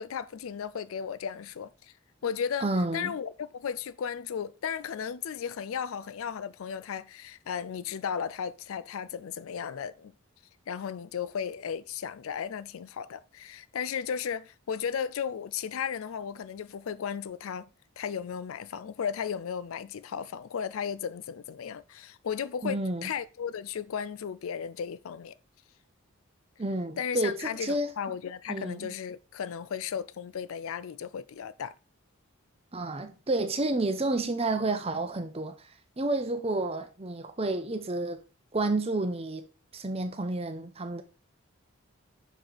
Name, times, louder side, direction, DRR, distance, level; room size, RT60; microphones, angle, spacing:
voice 1, 0.0-1.9 2.2-10.1 10.7-17.7 18.0-25.3 27.0-31.8, left 7 dB, 70° left, 0.4 m, -35 dB
voice 2, 2.6-3.1 22.6-23.1 26.6-27.9 28.5-28.9 32.7-35.7 36.0-38.2 38.5-39.5 39.7-41.0, right 2 dB, 30° right, 0.7 m, -30 dB
6.2 x 4.9 x 4.0 m
head